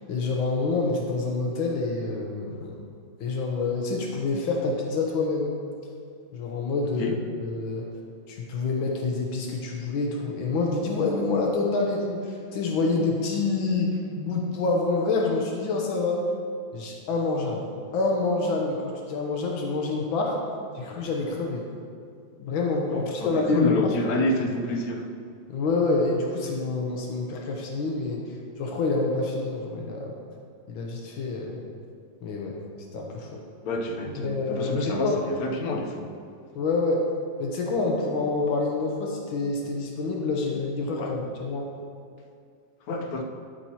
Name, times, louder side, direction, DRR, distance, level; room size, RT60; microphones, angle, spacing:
voice 1, 0.1-2.9 3.2-5.5 6.3-7.9 8.3-16.3 16.7-20.4 20.7-21.6 22.4-23.9 25.5-28.2 28.6-30.2 30.7-31.6 32.2-32.6 32.9-33.4 34.1-35.2 36.5-37.0 37.4-41.7, left 3 dB, 85° left, 1.7 m, -27 dB
voice 2, 23.2-25.1 33.7-35.1 35.4-36.1 41.0-41.1 42.9-43.2, left 1 dB, 65° left, 1.0 m, -28 dB
10.5 x 8.0 x 2.8 m
omnidirectional pair, 2.1 m